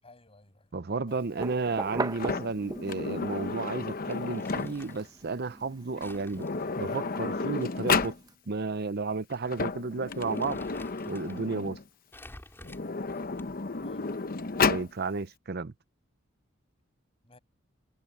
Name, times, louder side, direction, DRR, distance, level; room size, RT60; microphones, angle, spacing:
voice 1, 0.0-0.8 1.1-1.3 13.8-14.2 17.2-17.4, left 2 dB, 30° left, 7.2 m, -56 dB
voice 2, 0.7-6.5 6.8-8.1 8.5-10.6 11.0-11.8 14.6-15.7, right 4 dB, 50° right, 0.7 m, -32 dB
sound 1, 1.3-3.2 3.7-8.3, right 2 dB, 20° right, 0.9 m, -39 dB
Sliding door, 2.1-5.0 6.0-6.1 6.3-8.2 9.3-11.8 12.6-14.9, left 4 dB, 45° left, 0.8 m, -32 dB
Crumpling crinkling, 4.1-5.1 6.0-8.1 8.4-8.5 9.3-9.5 9.9-11.4 12.1-13.7, left 1 dB, 10° left, 5.6 m, -51 dB
head